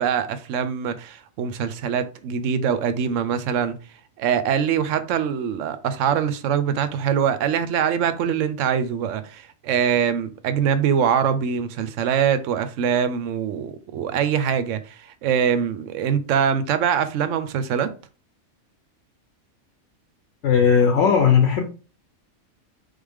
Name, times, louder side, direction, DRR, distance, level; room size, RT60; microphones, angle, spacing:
voice 1, 0.0-3.8 4.2-17.9, right 8 dB, 70° right, 0.9 m, -23 dB
voice 2, 20.4-21.6, left 7 dB, 60° left, 0.9 m, -17 dB
3.9 x 3.3 x 3.5 m
omnidirectional pair, 1.4 m